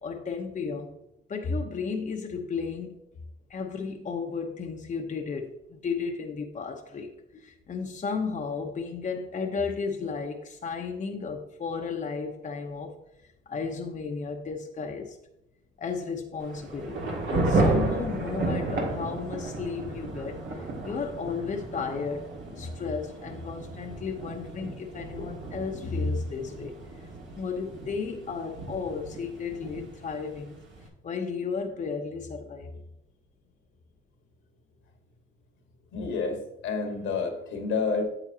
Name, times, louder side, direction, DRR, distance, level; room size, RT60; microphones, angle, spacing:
voice 1, 0.0-0.9 1.3-2.9 3.5-7.1 7.4-13.0 13.2-15.2 15.8-26.7 27.3-30.6 31.0-32.8, left 5 dB, 40° left, 0.8 m, -34 dB
Thunder / Rain, 16.4-30.9, right 2 dB, 70° right, 1.9 m, -33 dB
voice 2, 35.9-36.4 36.6-38.0, left 4 dB, 80° left, 1.6 m, -29 dB
8.9 x 7.1 x 2.8 m
cardioid pair, 90°, 20 cm